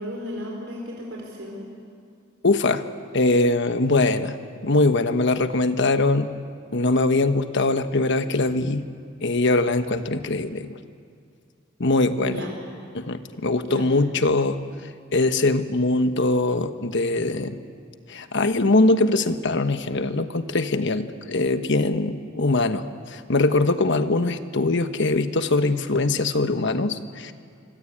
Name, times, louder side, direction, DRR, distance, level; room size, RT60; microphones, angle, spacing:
voice 1, 0.0-1.6 12.2-12.5 13.6-13.9, equal, 70° right, -1 dB, 4.7 m, -34 dB
voice 2, 2.4-2.8 3.1-4.3 4.6-6.3 6.7-8.9 9.2-10.8 11.8-12.4 12.9-14.6 15.1-17.6 18.1-27.3, left 2 dB, 60° left, 9 dB, 1.3 m, -22 dB
26.0 x 25.0 x 8.8 m, 2.3 s
head